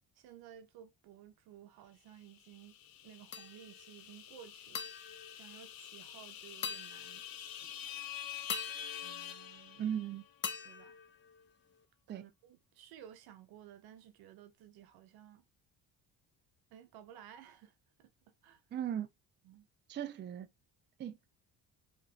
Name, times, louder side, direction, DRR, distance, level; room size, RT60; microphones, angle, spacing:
voice 1, 0.1-2.8 3.0-4.9 5.3-7.8 9.0-10.0 10.6-11.0 12.1-15.4 16.7-18.1 18.4-18.6 19.4-19.7, right 10 dB, 75° right, 0.9 m, -56 dB
sound 1, 2.3-10.3, left 10 dB, 65° left, 0.9 m, -47 dB
sound 2, 3.3-3.9 4.7-6.2 6.6-7.6 8.5-10.0 10.4-11.8, left 6 dB, 30° left, 0.7 m, -44 dB
voice 2, 9.8-10.2 12.1-12.2 18.7-19.1 19.9-20.5 21.0-21.3, right 9 dB, 30° right, 0.4 m, -37 dB
4.9 x 3.1 x 2.8 m
cardioid pair, 125°, 38 cm